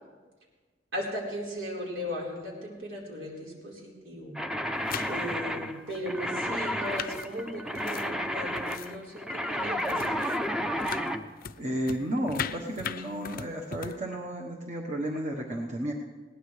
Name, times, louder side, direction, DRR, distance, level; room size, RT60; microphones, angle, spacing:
voice 1, 0.9-4.4 5.1-10.1, equal, 80° right, -3 dB, 4.3 m, -37 dB
sound 1, 4.3-11.2, equal, 5° right, 0.6 m, -32 dB
sound 2, 4.8-5.3 5.9-6.0 6.7-9.0 9.3-9.5 9.8-10.5 10.8-14.0, left 8 dB, 50° left, 0.5 m, -39 dB
voice 2, 11.6-15.9, right 1 dB, 40° right, -1 dB, 1.2 m, -32 dB
20.5 x 18.0 x 3.3 m, 1.3 s
head